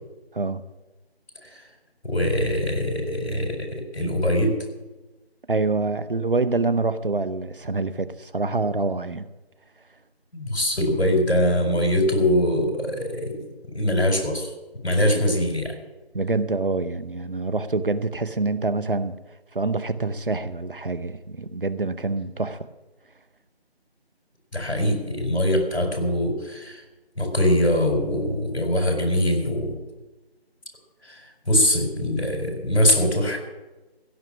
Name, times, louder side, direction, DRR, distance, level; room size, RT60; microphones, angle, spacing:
voice 1, 2.0-4.6 10.3-13.4 13.7-14.5 14.8-15.7 24.5-26.8 27.2-29.8 31.0-33.4, left 1 dB, 85° left, 4.7 m, -23 dB
voice 2, 5.5-9.3 15.0-15.2 16.1-19.2 19.5-22.7, right 3 dB, 55° right, 0.8 m, -26 dB
16.0 x 6.2 x 8.3 m
figure-of-eight pair, 180°, 32 cm